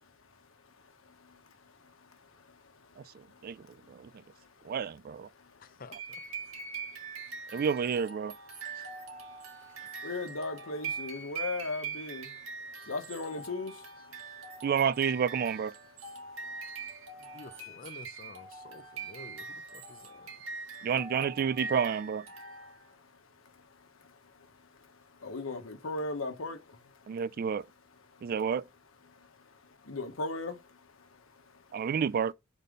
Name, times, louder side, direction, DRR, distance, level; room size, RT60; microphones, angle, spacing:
voice 1, 1.1-4.8 5.3-5.8 6.4-7.6 8.6-14.7 16.1-17.5 18.7-19.1 19.8-20.9 22.4-27.2 28.1-28.3 29.1-31.9, left 3 dB, 80° left, 1.1 m, -42 dB
voice 2, 3.4-4.1 4.6-5.3 7.5-8.3 14.6-15.7 20.8-22.2 27.1-27.6 28.2-28.6 31.7-32.3, right 7 dB, 45° right, 0.3 m, -30 dB
voice 3, 5.6-6.0 17.3-20.3, left 3 dB, 45° left, 0.6 m, -50 dB
sound 1, 5.9-23.0, right 4 dB, 90° right, 1.8 m, -42 dB
5.4 x 4.1 x 5.1 m
head